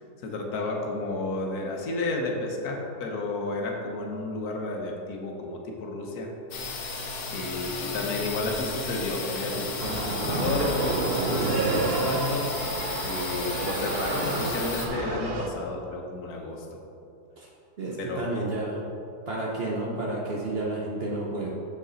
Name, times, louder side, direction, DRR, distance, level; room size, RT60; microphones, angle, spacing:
voice 1, 0.2-6.3 7.3-12.5 13.0-16.6 18.0-18.3, left 2 dB, 70° left, 1 dB, 1.4 m, -32 dB
sound 1, 6.5-14.9, left 3 dB, 55° left, 1.2 m, -34 dB
sound 2, 9.8-15.5, right 4 dB, 70° right, 0.5 m, -29 dB
voice 2, 17.8-18.8 19.3-21.5, right 2 dB, 50° right, -3 dB, 0.8 m, -31 dB
6.8 x 6.3 x 3.9 m, 2.6 s
omnidirectional pair, 1.7 m